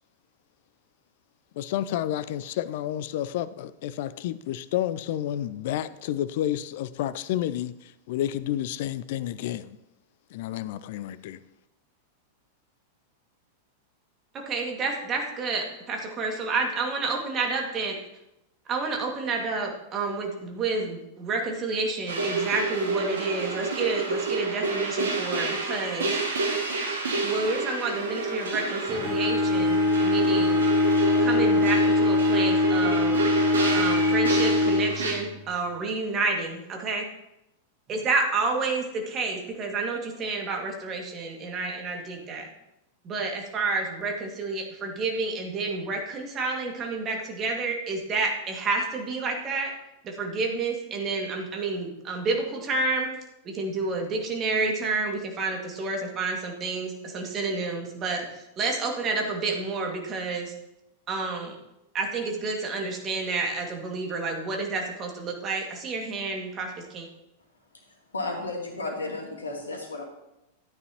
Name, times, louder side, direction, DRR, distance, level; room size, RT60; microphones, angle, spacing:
voice 1, 1.5-9.8 10.3-11.4, left 12 dB, 55° left, 15 dB, 0.5 m, -30 dB
voice 2, 14.3-18.0 18.7-26.2 27.2-30.7 31.2-33.2 33.7-37.1 37.9-42.5 43.0-49.7 50.0-53.1 53.4-60.5 61.1-61.6 61.9-67.1, right 3 dB, 30° right, 1 dB, 2.2 m, -29 dB
sound 1, 22.1-35.1, right 3 dB, 70° right, 2.2 m, -29 dB
Bowed string instrument, 28.9-35.6, left 2 dB, 5° right, 3.2 m, -23 dB
voice 3, 68.1-70.0, left 2 dB, 80° left, 1 dB, 2.2 m, -33 dB
13.0 x 9.5 x 3.0 m, 0.88 s
figure-of-eight pair, 95°, 0 cm